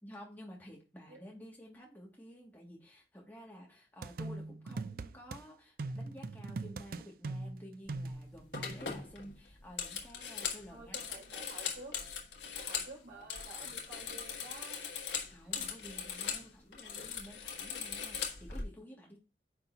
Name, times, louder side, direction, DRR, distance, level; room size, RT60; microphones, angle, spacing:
voice 1, 0.0-11.0 15.3-19.2, equal, 10° left, -2 dB, 2.0 m, -52 dB
sound 1, 4.0-5.4 5.8-8.9, right 3 dB, 55° right, 0.4 m, -41 dB
sound 2, 7.9-8.1 8.5-12.9 13.2-16.5 16.7-18.6, left 7 dB, 80° left, 1.6 m, -40 dB
voice 2, 10.7-12.0 12.5-14.8 15.5-15.6 16.0-16.1, right 3 dB, 80° right, -2 dB, 3.4 m, -51 dB
9.7 x 5.4 x 2.8 m, 0.30 s
head